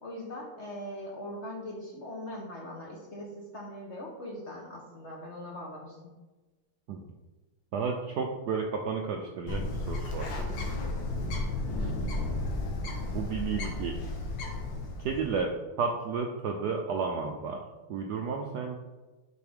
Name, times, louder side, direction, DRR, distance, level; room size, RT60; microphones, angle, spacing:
voice 1, 0.0-6.1 11.7-12.2, left 1 dB, 45° left, -1 dB, 0.9 m, -41 dB
voice 2, 7.7-10.3 13.1-14.0 15.0-15.5 15.8-17.6 17.9-18.8, right 5 dB, 75° right, 2 dB, 0.9 m, -32 dB
Bird, 9.5-15.4, left 2 dB, 65° left, 1.7 m, -33 dB
9.1 x 4.2 x 3.6 m, 1.2 s
omnidirectional pair, 2.4 m